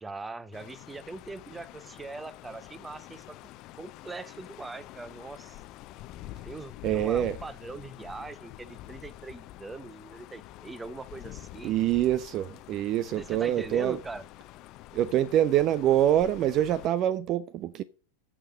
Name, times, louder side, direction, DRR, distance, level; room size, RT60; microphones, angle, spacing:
voice 1, 0.0-3.4 3.8-5.6 6.4-11.8 13.2-14.2, right 3 dB, 10° right, 0.8 m, -41 dB
sound 1, 0.5-16.9, left 15 dB, 40° left, 0.8 m, -47 dB
voice 2, 6.8-7.4 11.6-14.0 14.9-17.8, right 12 dB, 35° right, 0.5 m, -25 dB
14.5 x 6.6 x 5.4 m
figure-of-eight pair, 90°, 0 cm